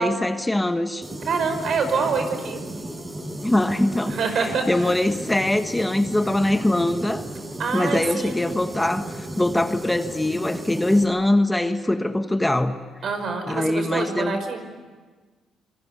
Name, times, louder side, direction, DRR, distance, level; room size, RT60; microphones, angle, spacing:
voice 1, 0.0-1.0 3.4-7.2 7.7-12.7 13.5-14.4, left 1 dB, 10° left, 8 dB, 1.3 m, -22 dB
sound 1, 1.0-11.0, right 1 dB, 20° right, 4.5 m, -35 dB
voice 2, 1.3-2.6 4.1-4.9 7.6-8.5 13.0-14.6, right 5 dB, 60° right, 7 dB, 5.5 m, -26 dB
27.0 x 22.5 x 9.8 m, 1.4 s
cardioid pair, 90°, 0 cm